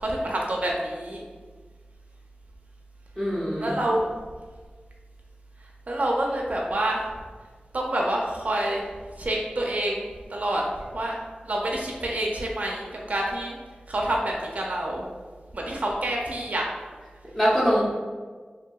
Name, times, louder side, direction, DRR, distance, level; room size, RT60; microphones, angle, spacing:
voice 1, 0.0-1.2 3.6-4.1 5.9-7.1 7.7-8.8 9.2-11.2 11.4-13.6 13.9-15.0 15.5-16.7, right 1 dB, 50° right, -2 dB, 0.4 m, -27 dB
voice 2, 3.2-3.7 17.2-17.8, equal, 15° left, -7 dB, 0.6 m, -23 dB
2.7 x 2.6 x 2.3 m, 1.5 s
wide cardioid pair, 50°, 3 cm